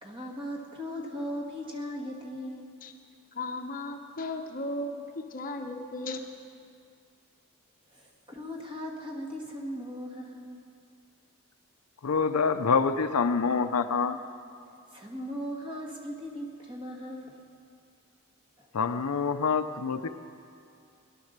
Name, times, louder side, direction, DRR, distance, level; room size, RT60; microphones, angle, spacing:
voice 1, 0.0-2.7 7.9-10.7 14.9-17.4 18.6-18.7, equal, 20° right, 0 dB, 1.8 m, -38 dB
voice 2, 3.3-6.2, left 2 dB, 40° left, 4 dB, 0.9 m, -36 dB
voice 3, 12.0-14.2 18.7-20.1, left 5 dB, 80° left, 9 dB, 0.6 m, -26 dB
17.5 x 11.0 x 6.7 m, 2.4 s
head